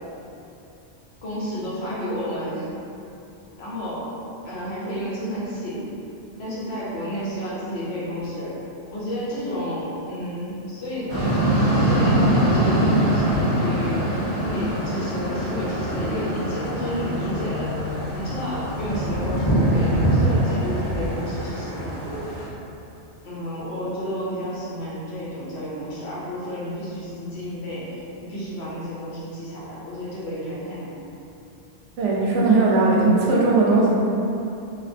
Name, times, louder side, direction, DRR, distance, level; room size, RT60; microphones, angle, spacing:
voice 1, 1.2-2.7 3.6-4.1 4.4-5.8 6.4-8.5 8.9-11.1 11.4-17.7 18.1-22.1 23.2-30.9, equal, 65° left, -8 dB, 0.9 m, -31 dB
sound 1, 11.1-22.4, right 1 dB, 20° left, 1.0 m, -23 dB
voice 2, 32.0-34.0, right 3 dB, 90° right, -5 dB, 0.9 m, -18 dB
2.4 x 2.2 x 2.5 m, 2.8 s
omnidirectional pair, 1.2 m